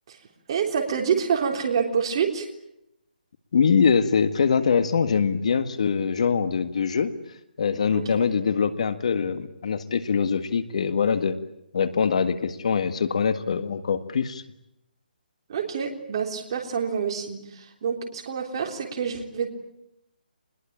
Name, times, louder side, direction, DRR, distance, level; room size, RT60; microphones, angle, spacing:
voice 1, 0.5-2.5 7.9-8.0 15.5-19.5, right 6 dB, 30° right, 2 dB, 3.7 m, -27 dB
voice 2, 3.5-7.1 7.6-11.4 11.7-14.4, left 6 dB, 40° left, 11 dB, 1.8 m, -23 dB
26.5 x 21.5 x 8.8 m, 0.82 s
hypercardioid pair, 170°, 5 cm